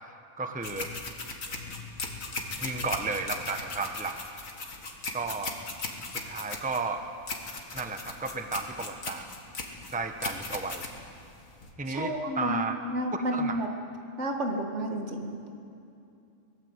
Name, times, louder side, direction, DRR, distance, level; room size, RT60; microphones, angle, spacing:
voice 1, 0.4-0.9 2.6-4.2 5.1-5.5 6.2-7.0 7.7-9.3 9.9-10.9 11.8-12.8 13.1-13.6, right 4 dB, 5° right, 6 dB, 1.0 m, -33 dB
sound 1, 0.6-11.7, left 3 dB, 85° left, 2.5 m, -38 dB
voice 2, 11.9-13.7 14.2-15.5, equal, 60° right, 2 dB, 2.5 m, -31 dB
22.5 x 19.5 x 8.2 m, 2.6 s
omnidirectional pair, 1.4 m